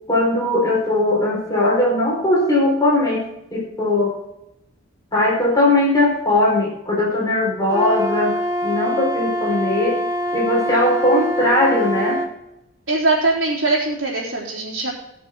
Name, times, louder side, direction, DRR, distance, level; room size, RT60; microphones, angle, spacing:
voice 1, 0.1-3.2 3.5-4.1 5.1-8.4 8.6-10.0 10.3-12.2, left 1 dB, 15° left, -3 dB, 4.3 m, -19 dB
Wind instrument woodwind instrument, 7.7-12.3, equal, 20° right, 2.5 m, -24 dB
voice 2, 12.9-14.9, right 2 dB, 55° right, -7 dB, 3.8 m, -21 dB
20.0 x 6.8 x 3.8 m, 0.83 s
head